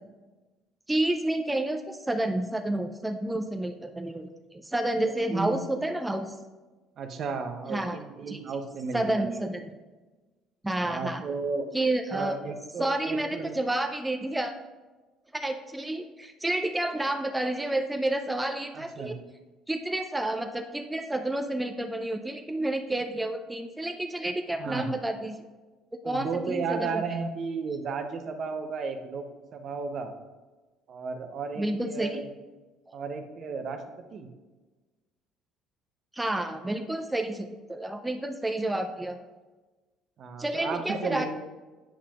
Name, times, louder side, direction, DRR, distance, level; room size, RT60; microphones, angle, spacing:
voice 1, 0.9-6.4 7.7-8.0 8.3-8.4 8.9-9.6 10.6-11.2 11.7-12.4 12.8-14.5 15.3-19.2 19.7-25.4 26.0-27.3 31.6-32.2 36.1-39.2 40.4-41.3, right 1 dB, 10° right, 5 dB, 0.5 m, -30 dB
voice 2, 7.0-9.5 10.8-11.7 12.1-13.5 18.7-19.2 24.6-24.9 26.0-29.3 29.5-30.1 30.9-32.2 32.9-34.3 40.2-41.3, right 4 dB, 55° right, 6 dB, 0.7 m, -33 dB
8.5 x 5.7 x 2.4 m, 1.2 s
hypercardioid pair, 65°, 0 cm